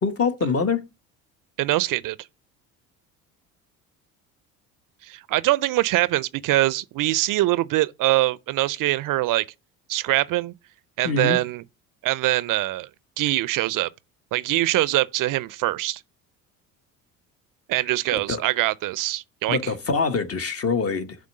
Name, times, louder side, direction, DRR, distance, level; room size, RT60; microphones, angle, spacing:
voice 1, 0.0-0.9 11.0-11.4 18.1-18.4 19.5-21.2, left 4 dB, 35° left, 1.2 m, -24 dB
voice 2, 1.6-2.2 5.0-9.4 9.9-10.5 11.0-11.6 12.0-12.9 13.2-13.9 14.3-16.0 17.7-19.7, right 17 dB, 55° right, 0.5 m, -23 dB
7.5 x 3.5 x 6.5 m
hypercardioid pair, 65°, 41 cm